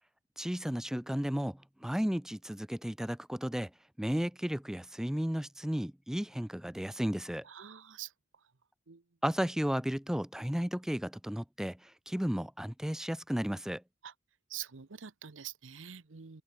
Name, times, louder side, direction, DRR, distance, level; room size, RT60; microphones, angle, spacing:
voice 1, 0.4-3.7 4.0-7.4 9.2-13.8, equal, 5° right, 0.4 m, -34 dB
voice 2, 7.4-8.1 8.9-9.0 14.0-14.1 14.5-16.4, right 10 dB, 80° right, 0.9 m, -45 dB
head